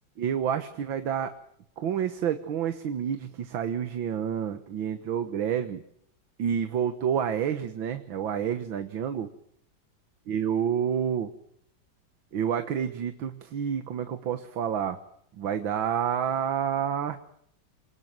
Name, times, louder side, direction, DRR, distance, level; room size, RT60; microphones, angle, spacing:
voice 1, 0.2-1.3 1.8-5.8 6.4-9.3 10.3-11.3 12.3-15.0 15.3-17.2, right 8 dB, 80° right, 9 dB, 2.0 m, -29 dB
27.5 x 19.5 x 7.8 m, 0.70 s
omnidirectional pair, 2.2 m